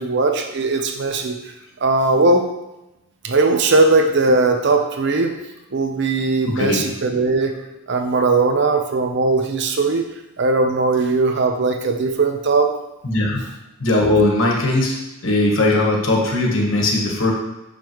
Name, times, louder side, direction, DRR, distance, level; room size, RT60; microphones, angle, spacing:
voice 1, 0.0-1.3 1.8-2.5 3.2-5.3 5.7-7.5 7.9-10.0 10.4-12.7, right 3 dB, 60° right, 4 dB, 0.7 m, -18 dB
voice 2, 6.5-6.8 13.0-13.4 13.8-14.9 15.2-17.3, left 2 dB, 70° left, 0 dB, 1.2 m, -18 dB
6.3 x 5.2 x 3.0 m, 0.96 s
head